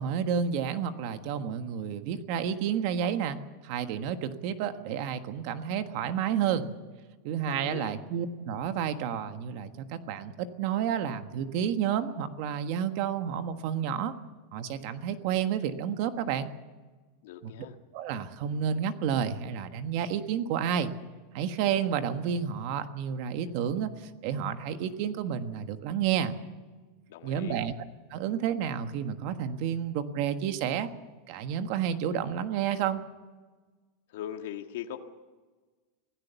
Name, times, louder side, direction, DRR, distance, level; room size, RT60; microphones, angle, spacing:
voice 1, 0.0-3.4 3.6-6.7 7.2-14.1 14.5-16.5 17.4-17.5 17.9-20.9 21.3-23.9 24.2-26.3 27.2-27.7 28.1-30.9 31.3-33.0, right 8 dB, 45° right, 9 dB, 1.4 m, -30 dB
voice 2, 7.5-7.9 17.2-17.7 27.1-27.6 34.1-35.0, left 10 dB, 65° left, 4 dB, 1.7 m, -39 dB
25.5 x 16.5 x 7.0 m, 1.3 s
supercardioid pair, 175°, 0 cm